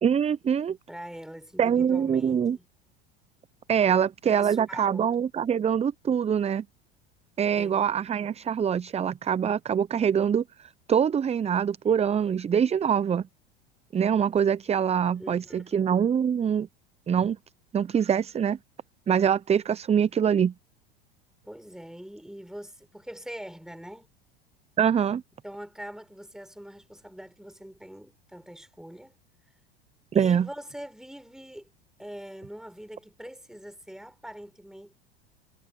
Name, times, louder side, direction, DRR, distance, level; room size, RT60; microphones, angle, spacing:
voice 1, 0.0-0.8 1.6-2.6 3.7-6.6 7.4-13.2 13.9-16.7 17.1-17.4 17.7-18.6 19.1-20.5 24.8-25.2 30.1-30.5, right 8 dB, 20° right, 0.8 m, -24 dB
voice 2, 0.9-2.6 3.9-5.1 7.6-7.8 15.2-15.8 21.5-24.1 25.4-29.1 30.1-31.7 32.0-34.9, equal, ahead, 4.2 m, -43 dB
figure-of-eight pair, 80°, 31 cm